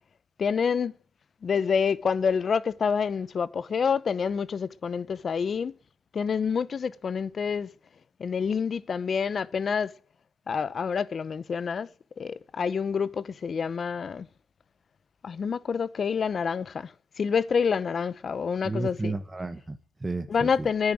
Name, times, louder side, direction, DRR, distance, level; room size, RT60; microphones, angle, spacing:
voice 1, 0.4-0.9 1.4-5.7 6.1-7.7 8.2-9.9 10.5-11.9 12.2-14.3 15.2-16.9 17.2-19.1 20.3-20.9, left 6 dB, 45° left, 0.7 m, -27 dB
voice 2, 18.6-20.7, right 3 dB, 20° right, 1.0 m, -33 dB
10.0 x 9.7 x 9.2 m
cardioid pair, 90°, 0 cm